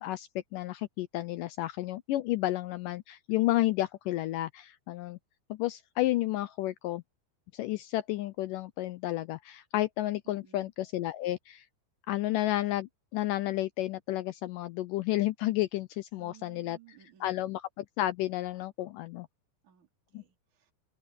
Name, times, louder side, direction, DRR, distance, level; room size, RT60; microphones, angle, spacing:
voice 1, 0.0-5.2 5.5-7.0 7.5-11.7 12.1-16.8 17.2-19.3 20.1-20.2, left 16 dB, 80° left, 1.9 m, -31 dB
voice 2, 10.3-10.7 16.2-17.5 19.6-20.7, right 12 dB, 50° right, 5.5 m, -58 dB
open air
omnidirectional pair, 4.4 m